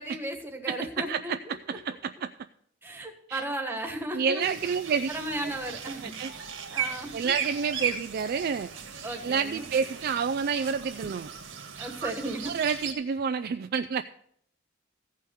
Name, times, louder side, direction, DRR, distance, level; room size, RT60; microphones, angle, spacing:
voice 1, 0.0-1.5 2.8-4.4 5.1-6.1 6.7-7.3 9.0-9.7 11.8-12.5, right 1 dB, 10° right, 3 dB, 1.4 m, -35 dB
voice 2, 0.7-2.3 3.3-3.4 4.1-5.1 6.0-6.3 7.1-8.7 9.2-11.3 12.0-12.1 12.5-14.0, right 6 dB, 50° right, 9 dB, 0.3 m, -29 dB
sound 1, 4.4-12.9, right 7 dB, 65° right, 1.5 m, -37 dB
15.0 x 5.6 x 6.4 m, 0.68 s
head